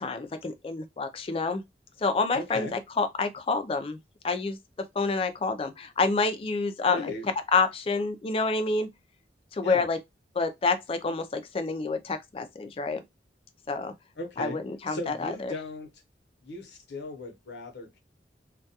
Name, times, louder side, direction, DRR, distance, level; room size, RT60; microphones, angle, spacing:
voice 1, 0.0-1.6 2.0-4.0 4.2-4.6 4.9-7.1 7.5-8.9 9.5-10.0 10.4-13.0 13.7-13.9 14.4-15.6, left 4 dB, 30° left, 0.4 m, -28 dB
voice 2, 2.3-2.7 6.9-7.3 9.6-9.8 14.2-14.6 14.9-16.0 16.4-18.0, left 2 dB, 75° left, 0.8 m, -37 dB
2.3 x 2.2 x 2.7 m
head